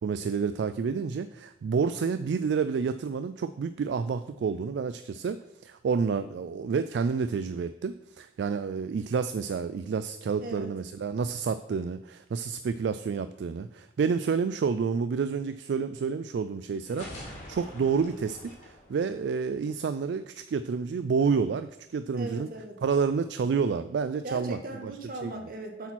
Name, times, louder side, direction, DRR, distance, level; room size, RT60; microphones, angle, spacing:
voice 1, 0.0-22.5 22.8-24.9 25.2-25.3, right 5 dB, 70° right, 12 dB, 0.3 m, -29 dB
voice 2, 10.4-10.7 22.1-22.8 24.2-25.9, right 2 dB, 55° right, 3 dB, 1.3 m, -38 dB
sound 1, 16.8-19.7, left 1 dB, 45° left, 2.7 m, -45 dB
8.1 x 4.3 x 6.0 m, 0.86 s
head